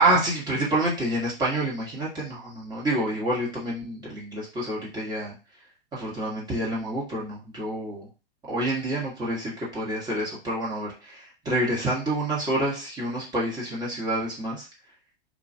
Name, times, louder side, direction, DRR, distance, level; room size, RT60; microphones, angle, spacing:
voice 1, 0.0-5.3 5.9-8.1 8.5-14.7, right 1 dB, 15° right, -6 dB, 1.3 m, -28 dB
2.9 x 2.3 x 2.7 m, 0.32 s
figure-of-eight pair, 105°, 29 cm